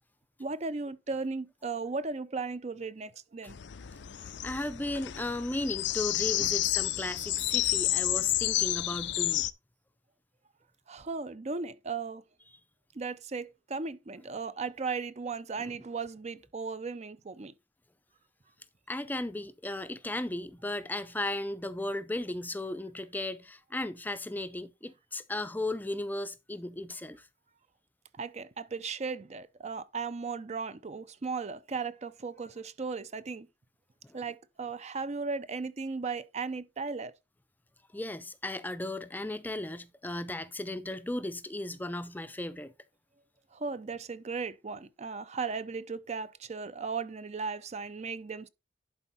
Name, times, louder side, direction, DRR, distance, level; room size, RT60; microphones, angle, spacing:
voice 1, 0.4-3.6 3.9-4.0 6.4-6.5 10.9-12.2 12.9-17.5 28.1-33.5 34.1-37.1 43.5-48.5, right 4 dB, 40° right, 0.5 m, -36 dB
sound 1, 3.5-9.5, left 15 dB, 80° left, 0.5 m, -30 dB
voice 2, 4.2-9.5 18.9-27.3 34.0-34.2 37.9-42.7, left 1 dB, 10° left, 0.5 m, -36 dB
11.0 x 4.5 x 4.1 m
head